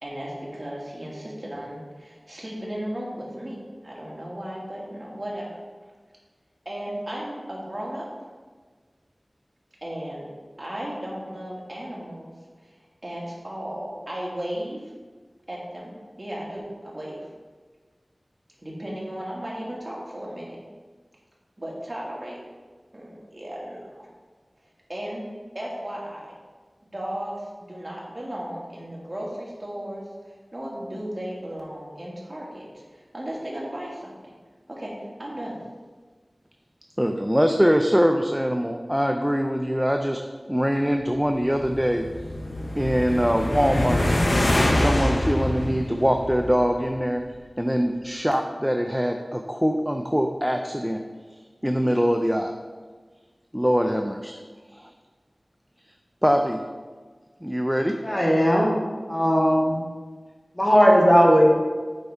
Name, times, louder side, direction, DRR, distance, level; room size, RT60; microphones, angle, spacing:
voice 1, 0.0-5.6 6.7-8.1 9.8-10.3 10.6-12.3 12.6-12.7 13.0-14.9 15.5-17.2 18.6-20.6 21.6-22.4 22.9-24.1 24.9-25.3 25.5-26.3 26.8-34.3 34.7-34.9 35.2-35.6, equal, 35° right, -4 dB, 1.9 m, -35 dB
voice 2, 37.0-40.2 40.5-42.1 42.7-44.1 44.7-47.2 47.6-51.0 51.6-52.6 53.5-54.3 54.7-54.9 56.2-56.6 57.4-58.0, equal, 5° right, 4 dB, 0.4 m, -23 dB
sound 1, 41.3-46.8, left 1 dB, 60° left, 0.8 m, -25 dB
voice 3, 58.0-58.8 59.1-59.8 60.6-61.5, equal, 25° left, -4 dB, 1.7 m, -17 dB
8.1 x 5.3 x 3.5 m, 1.4 s
wide cardioid pair, 60°, 0 cm